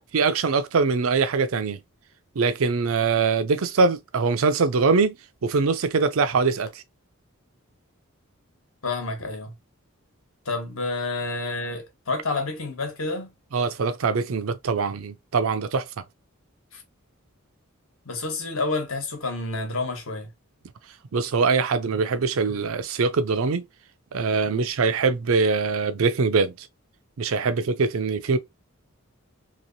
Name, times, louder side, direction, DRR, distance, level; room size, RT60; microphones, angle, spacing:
voice 1, 0.1-1.8 2.4-5.2 5.4-6.8 13.5-15.8 21.1-23.7 24.1-26.7 27.2-28.4, right 4 dB, 70° right, 0.5 m, -23 dB
voice 2, 8.8-9.5 10.4-13.3 16.7-16.8 18.0-20.3 24.5-24.7, left 3 dB, 65° left, 1.2 m, -29 dB
3.0 x 2.9 x 2.6 m
head